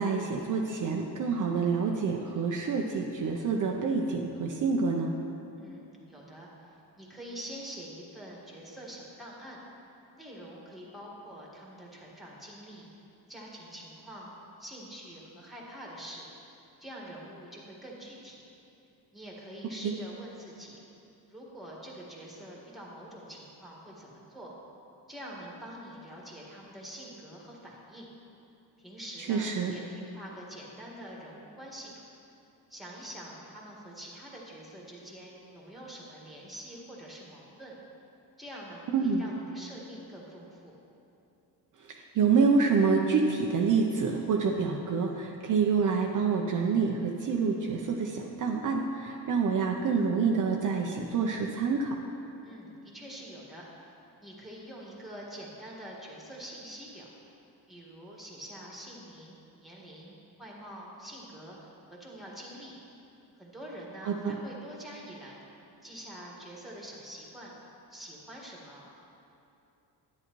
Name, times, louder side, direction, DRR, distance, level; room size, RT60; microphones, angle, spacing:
voice 1, 0.0-5.1 19.8-19.9 29.3-29.7 38.9-39.2 41.8-52.0 64.0-64.3, right 5 dB, 50° right, 0 dB, 0.7 m, -27 dB
voice 2, 5.6-9.6 10.1-12.9 13.3-14.3 14.6-16.3 16.8-18.4 19.1-20.8 21.3-24.6 25.1-28.1 28.8-32.0 32.7-37.7 38.4-40.8 52.4-53.9 54.2-57.1 57.7-62.7 63.4-65.4 65.8-67.5 67.9-68.9, right 1 dB, ahead, -4 dB, 1.6 m, -45 dB
11.0 x 9.4 x 3.0 m, 2.8 s
cardioid pair, 140°, 40 cm